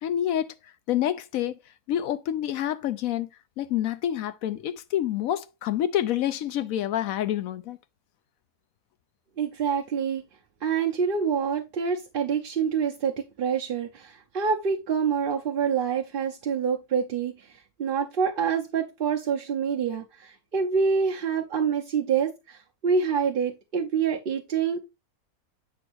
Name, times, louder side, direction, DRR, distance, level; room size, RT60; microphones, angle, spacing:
voice 1, 0.0-1.6 1.9-3.3 3.6-7.8, left 11 dB, 70° left, 1.0 m, -28 dB
voice 2, 9.4-10.3 10.6-24.8, right 6 dB, 45° right, 0.8 m, -26 dB
8.0 x 2.9 x 6.1 m
omnidirectional pair, 1.6 m